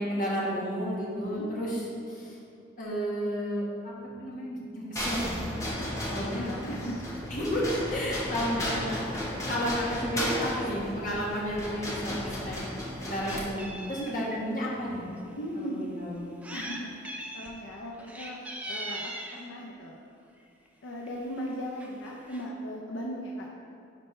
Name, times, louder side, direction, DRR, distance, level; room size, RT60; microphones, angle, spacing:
voice 1, 0.0-1.8 2.1-2.4 2.8-3.9 4.2-5.5 6.1-6.5 7.3-9.2 9.5-12.5 13.0-15.1 15.6-16.2, equal, 40° left, -5 dB, 1.4 m, -32 dB
voice 2, 1.2-1.5 5.8-5.9 6.3-7.1 14.0-14.1 15.4-16.0 16.5-17.0 17.3-18.4 18.7-20.0 20.8-23.5, equal, 75° left, -2 dB, 0.6 m, -38 dB
sound 1, 5.0-13.4, equal, 15° left, 0.9 m, -34 dB
Meow, 12.1-12.3 12.7-14.4 15.2-15.3 16.2-16.8 17.0-17.5 18.0-19.4 20.4-20.7 21.1-21.2 21.4-21.5 21.8-22.4, right 1 dB, 5° right, 0.4 m, -40 dB
10.5 x 4.3 x 3.2 m, 2.6 s
head